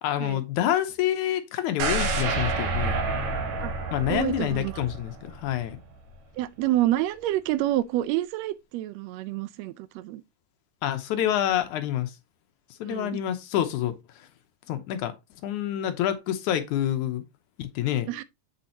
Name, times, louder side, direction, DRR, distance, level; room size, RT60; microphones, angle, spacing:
voice 1, 0.0-3.0 3.9-5.8 10.8-12.2 12.8-14.3 14.7-15.1 15.4-17.2 17.6-18.1, left 11 dB, 75° left, 2.2 m, -27 dB
sound 1, 1.8-5.8 6.1-6.2, right 3 dB, 65° right, 2.8 m, -29 dB
voice 2, 4.1-4.8 6.4-10.2 12.9-13.2 18.1-18.2, right 14 dB, 90° right, 1.5 m, -28 dB
7.8 x 7.4 x 2.8 m
omnidirectional pair, 3.6 m